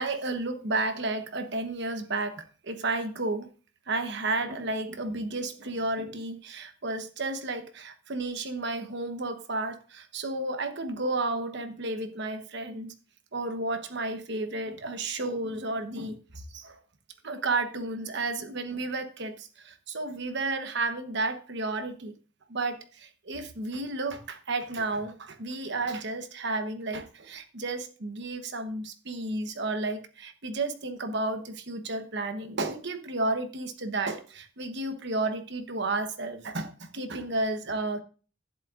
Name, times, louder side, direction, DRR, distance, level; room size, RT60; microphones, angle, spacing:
voice 1, 0.0-3.5 3.9-12.9 13.3-16.8 17.2-22.1 22.5-38.0, right 2 dB, 60° right, 8 dB, 1.1 m, -32 dB
11.0 x 10.5 x 2.5 m, 0.38 s
head